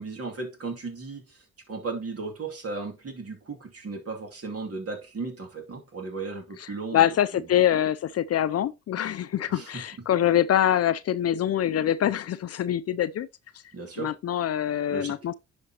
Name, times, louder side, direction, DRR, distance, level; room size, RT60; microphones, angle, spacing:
voice 1, 0.0-1.4 1.7-7.1 7.3-7.5 9.5-9.8 13.7-14.2 14.9-15.2, right 3 dB, 50° right, 2.6 m, -35 dB
voice 2, 6.9-13.3 14.0-15.3, left 11 dB, 50° left, 0.5 m, -24 dB
10.0 x 5.4 x 2.9 m
supercardioid pair, 55°, 31 cm